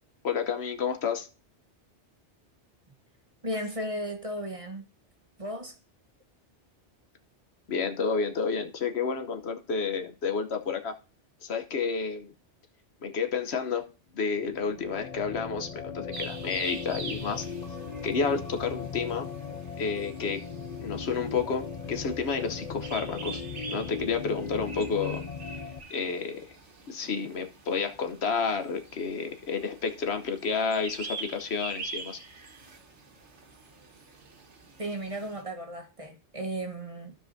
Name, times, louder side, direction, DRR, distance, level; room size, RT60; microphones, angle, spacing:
voice 1, 0.2-1.3 7.7-10.9 11.4-12.3 13.0-13.8 14.1-17.5 18.0-19.3 19.8-20.4 20.8-25.2 25.9-26.5 26.9-32.2, left 5 dB, 70° left, 1.1 m, -30 dB
voice 2, 3.4-4.8 5.4-5.8 34.8-37.1, right 1 dB, 30° right, 1.1 m, -35 dB
sound 1, 14.3-25.8, left 5 dB, 40° left, 0.7 m, -38 dB
sound 2, 16.1-35.4, right 4 dB, 80° right, 1.7 m, -45 dB
15.0 x 5.1 x 2.6 m
omnidirectional pair, 1.2 m